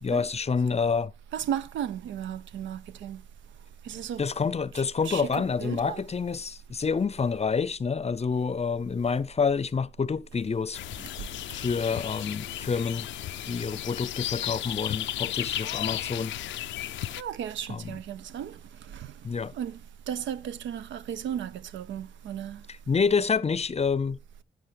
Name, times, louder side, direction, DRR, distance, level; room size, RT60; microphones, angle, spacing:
voice 1, 0.0-1.1 4.2-10.8 11.5-13.1 13.4-16.3 17.7-17.9 19.2-19.5 22.9-24.2, left 5 dB, 35° left, 0.5 m, -28 dB
voice 2, 1.3-3.2 3.8-4.3 5.0-6.0 11.0-11.1 17.2-18.6 18.9-19.1 19.5-19.8 20.1-22.6, right 9 dB, 85° right, 0.5 m, -35 dB
sound 1, 10.7-17.2, left 13 dB, 90° left, 0.4 m, -34 dB
9.9 x 9.4 x 3.3 m
supercardioid pair, 50°, 19 cm